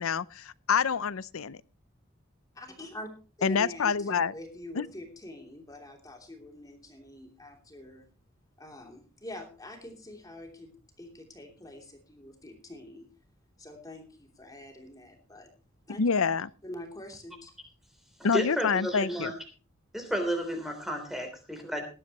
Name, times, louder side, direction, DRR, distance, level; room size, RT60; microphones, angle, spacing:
voice 1, 0.0-1.6 3.4-4.3 4.8-4.9 16.0-16.5 18.2-19.3, left 6 dB, 85° left, 0.6 m, -27 dB
voice 2, 2.5-3.1 3.4-8.1 8.6-13.1 13.6-15.5 15.9-16.0 16.6-17.5, left 1 dB, 15° left, 3.0 m, -45 dB
voice 3, 18.3-19.4 19.9-21.8, equal, ahead, 3.4 m, -32 dB
19.0 x 12.0 x 3.0 m
head